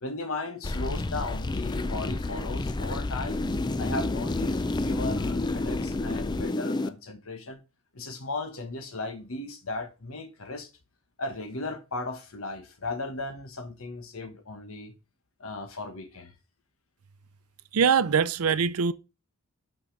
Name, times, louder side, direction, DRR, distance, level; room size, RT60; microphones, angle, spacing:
voice 1, 0.0-3.4 3.8-7.6 7.9-10.7 11.2-14.9 15.4-16.3, left 2 dB, 65° left, 1.3 m, -36 dB
sound 1, 0.6-6.9, left 2 dB, 20° left, 0.3 m, -29 dB
voice 2, 17.7-18.9, right 6 dB, 80° right, 0.5 m, -23 dB
5.9 x 5.4 x 5.3 m
head